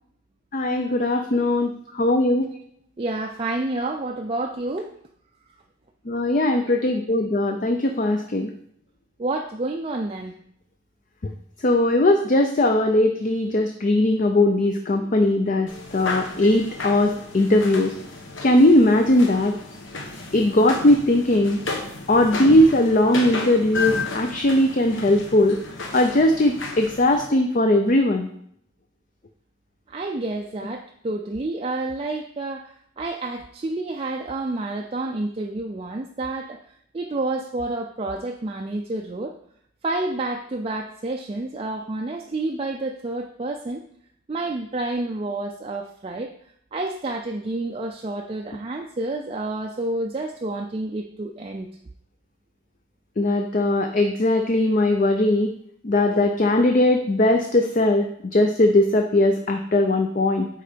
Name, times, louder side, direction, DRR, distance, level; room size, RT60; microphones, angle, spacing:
voice 1, 0.5-2.5 6.1-8.5 11.6-17.9 18.4-19.5 20.3-21.6 22.1-25.6 25.9-28.3 53.2-55.5 55.8-58.1 58.3-60.5, left 1 dB, 40° left, 5 dB, 0.5 m, -19 dB
voice 2, 3.0-4.9 9.2-10.3 29.9-36.6 36.9-39.4 39.8-43.8 44.3-46.3 46.7-51.7, right 2 dB, 30° right, 3 dB, 0.4 m, -29 dB
sound 1, 15.7-27.3, left 3 dB, 65° left, 1.1 m, -33 dB
9.5 x 3.8 x 5.1 m, 0.70 s
head